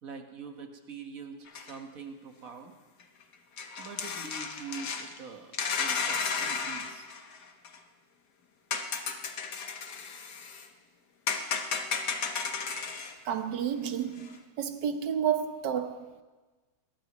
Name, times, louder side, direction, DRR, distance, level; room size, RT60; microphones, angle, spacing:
voice 1, 0.0-2.7 3.8-7.1, right 5 dB, 55° right, 1.8 m, -44 dB
sound 1, 1.5-1.7 3.0-3.1 3.6-5.2 5.5-7.8 8.7-10.7 11.3-13.1 14.2-14.3, left 5 dB, 75° left, 1.8 m, -33 dB
voice 2, 13.2-14.3 14.6-16.2, right 8 dB, 85° right, 1.6 m, -30 dB
21.5 x 21.0 x 3.1 m
omnidirectional pair, 1.8 m